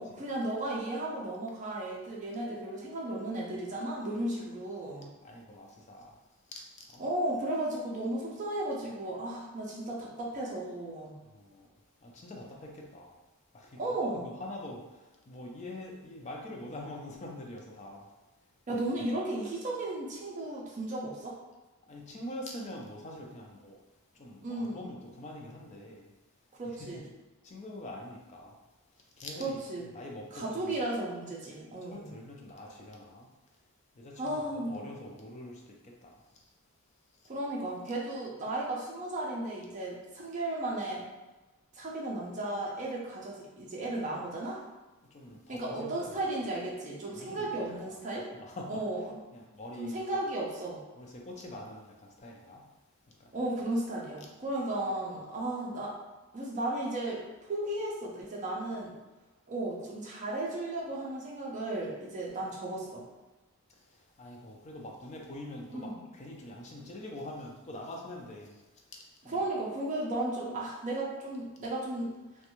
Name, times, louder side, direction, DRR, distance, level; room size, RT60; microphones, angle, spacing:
voice 1, 0.0-5.1 7.0-11.1 13.8-14.3 18.7-21.4 24.4-24.9 26.6-27.1 29.4-29.9 30.3-32.1 34.2-34.9 37.3-41.0 41.7-44.6 45.5-48.3 48.7-49.2 49.8-50.8 53.3-55.9 56.3-59.0 59.5-63.1 65.7-66.0 69.3-72.1, right 1 dB, 35° right, -3 dB, 0.4 m, -35 dB
voice 2, 5.2-6.2 6.8-7.0 11.2-11.7 12.0-13.2 13.5-13.8 14.2-18.1 21.9-23.8 24.1-26.1 26.6-27.1 27.4-28.6 29.2-30.7 31.9-33.3 34.0-36.2 45.1-46.1 47.1-48.8 49.3-50.0 51.0-52.7 53.2-53.3 63.9-68.6 69.2-69.5, left 1 dB, 30° left, 0 dB, 0.4 m, -45 dB
2.5 x 2.2 x 2.9 m, 1.1 s
head